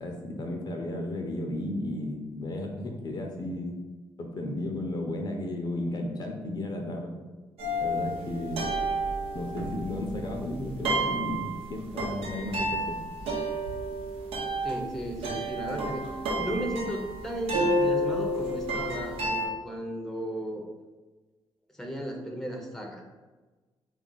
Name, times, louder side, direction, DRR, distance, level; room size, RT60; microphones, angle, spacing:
voice 1, 0.0-3.8 4.2-7.1 7.8-8.7 9.3-13.0, left 1 dB, 45° left, 2 dB, 0.6 m, -34 dB
sound 1, 7.6-19.5, right 1 dB, 85° right, 0.9 m, -30 dB
voice 2, 14.6-16.1 16.4-20.6 21.8-23.0, equal, 5° left, 1 dB, 0.7 m, -35 dB
3.5 x 2.4 x 3.8 m, 1.2 s
cardioid pair, 80°, 10 cm